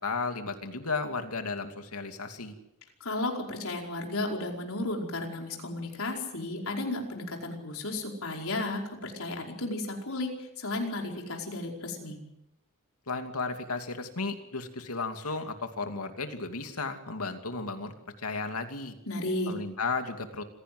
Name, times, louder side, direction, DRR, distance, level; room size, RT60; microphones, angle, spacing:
voice 1, 0.0-2.5 13.1-19.0 19.5-20.4, left 4 dB, 80° left, 6 dB, 2.6 m, -34 dB
voice 2, 3.0-12.2 19.1-19.5, left 2 dB, 65° left, 1 dB, 5.1 m, -33 dB
27.0 x 16.5 x 7.9 m, 0.86 s
head